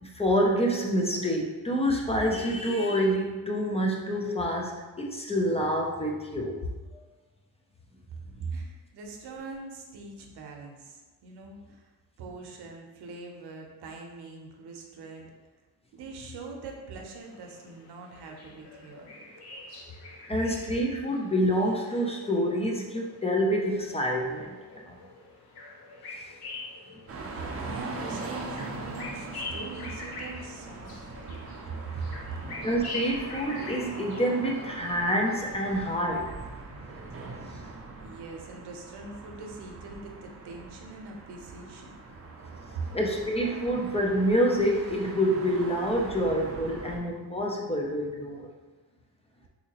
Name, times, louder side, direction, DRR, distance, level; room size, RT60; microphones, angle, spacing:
voice 1, 0.0-6.6 20.3-25.0 32.6-36.3 42.9-48.5, equal, 15° left, -1 dB, 0.4 m, -27 dB
voice 2, 8.1-11.9 12.2-15.3 15.9-19.1 27.4-31.4 31.9-32.4 37.6-42.0 42.7-42.9, right 3 dB, 75° right, 1 dB, 0.8 m, -41 dB
sound 1, 17.2-35.9, left 2 dB, 65° left, 0.8 m, -44 dB
sound 2, 27.1-47.0, right 3 dB, 35° right, 0.5 m, -42 dB
3.6 x 2.8 x 2.9 m, 1.2 s
cardioid pair, 110°, 40 cm